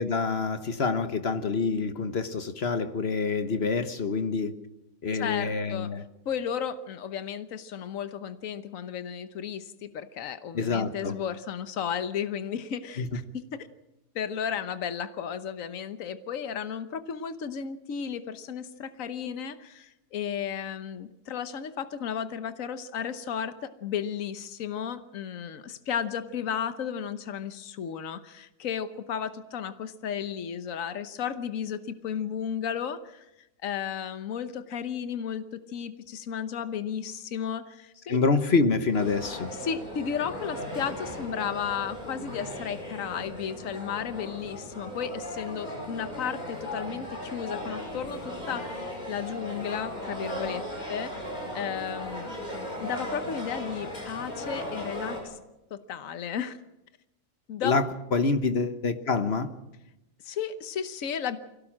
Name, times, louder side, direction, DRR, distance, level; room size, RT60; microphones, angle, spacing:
voice 1, 0.0-4.5 5.0-6.0 10.5-11.2 13.0-13.1 38.1-39.5 57.6-59.5, left 4 dB, 50° left, 1.3 m, -26 dB
voice 2, 5.1-5.9 6.2-13.7 14.1-33.3 33.6-38.2 39.6-50.6 50.9-52.5 52.8-55.4 55.7-56.6 57.5-57.8 60.2-61.4, left 8 dB, 70° left, 1.4 m, -34 dB
sound 1, 38.9-55.2, equal, 30° left, 5.8 m, -37 dB
23.5 x 17.0 x 7.4 m
omnidirectional pair, 1.4 m